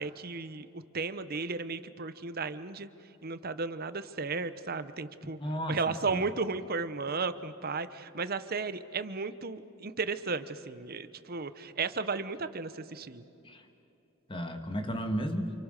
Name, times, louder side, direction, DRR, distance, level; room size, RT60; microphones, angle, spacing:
voice 1, 0.0-2.9 3.2-5.4 5.7-13.2, right 4 dB, 45° right, 12 dB, 1.0 m, -34 dB
voice 2, 5.4-6.2 13.4-13.6 14.3-15.5, equal, 25° left, 6 dB, 2.0 m, -34 dB
29.0 x 29.0 x 6.6 m, 2.7 s
head